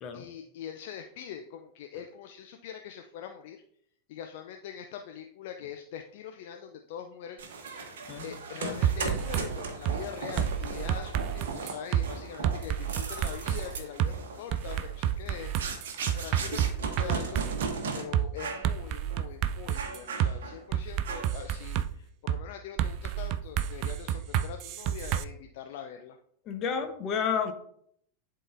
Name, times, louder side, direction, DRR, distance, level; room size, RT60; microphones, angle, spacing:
voice 1, 0.1-3.6 4.1-7.4 8.2-15.5 16.1-17.4 17.9-26.2, left 9 dB, 50° left, 5 dB, 0.5 m, -43 dB
sound 1, 7.4-18.0 18.4-18.7 19.1-19.2 19.8-20.6 21.1-21.5, right 4 dB, 60° right, 1.0 m, -37 dB
sound 2, 8.8-9.5 9.9-10.0 10.4-12.1 12.4-13.6 14.0-14.1 14.5-17.7 18.1-18.3 18.6-20.3 20.7-21.9 22.3-22.4 22.8-25.2, right 10 dB, 40° right, 0.3 m, -29 dB
voice 2, 26.5-27.5, left 6 dB, 35° left, 6 dB, 0.9 m, -30 dB
11.0 x 3.8 x 2.6 m, 0.68 s
figure-of-eight pair, 90°, 0 cm